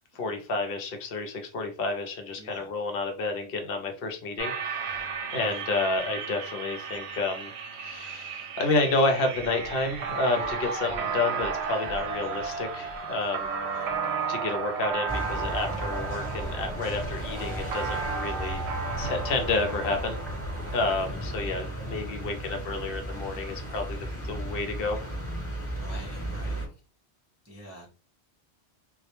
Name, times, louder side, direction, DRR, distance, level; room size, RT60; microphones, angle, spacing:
voice 1, 0.1-7.5 7.8-13.5 14.3-18.6 19.0-20.2 20.7-24.0 24.2-25.0, left 3 dB, 60° left, 5 dB, 0.8 m, -30 dB
voice 2, 2.4-2.7 5.4-5.6 13.7-13.9 18.4-18.7 21.1-21.5 25.7-26.7 27.4-27.9, equal, 20° right, -3 dB, 0.4 m, -47 dB
sound 1, 4.4-21.1, right 6 dB, 75° right, 0.8 m, -34 dB
sound 2, 10.0-16.9 17.2-19.6, right 3 dB, 40° right, 0.8 m, -41 dB
sound 3, 15.1-26.7, right 1 dB, 15° left, 0.9 m, -35 dB
2.2 x 2.1 x 2.8 m, 0.35 s
omnidirectional pair, 1.2 m